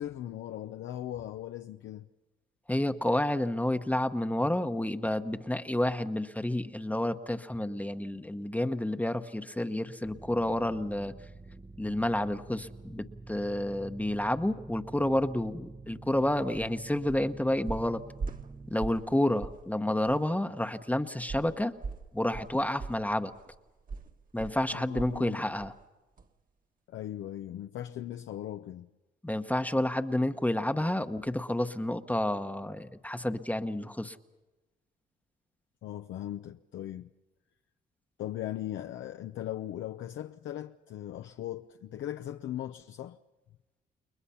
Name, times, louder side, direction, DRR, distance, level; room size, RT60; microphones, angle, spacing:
voice 1, 0.0-2.1 24.7-25.4 26.9-28.9 35.8-37.1 38.2-43.2, left 12 dB, 70° left, 0.7 m, -38 dB
voice 2, 2.7-11.1 11.8-18.0 18.7-21.7 22.1-23.3 24.3-25.7 29.2-34.2, left 1 dB, 5° left, 1.0 m, -30 dB
sound 1, 10.0-18.7, right 3 dB, 15° right, 0.8 m, -48 dB
sound 2, 16.5-16.7 17.1-17.3 17.7-19.1 19.4-19.7 20.1-20.2 21.3-25.3 25.6-25.8 26.2-26.3, right 4 dB, 45° right, 1.5 m, -40 dB
29.5 x 21.5 x 5.7 m
cardioid pair, 90°, 20 cm